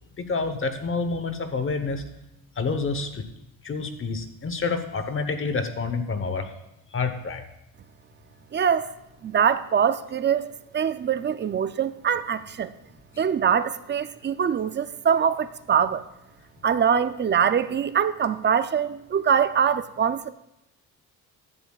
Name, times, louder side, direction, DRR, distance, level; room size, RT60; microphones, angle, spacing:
voice 1, 0.2-2.0 2.6-3.2 3.6-6.5 6.9-7.4, left 4 dB, 35° left, 1.0 m, -28 dB
voice 2, 8.5-8.9 9.2-10.5 10.7-12.7 13.2-16.0 16.6-20.3, right 7 dB, 30° right, 0.4 m, -23 dB
15.0 x 11.0 x 2.4 m
cardioid pair, 135°, 37 cm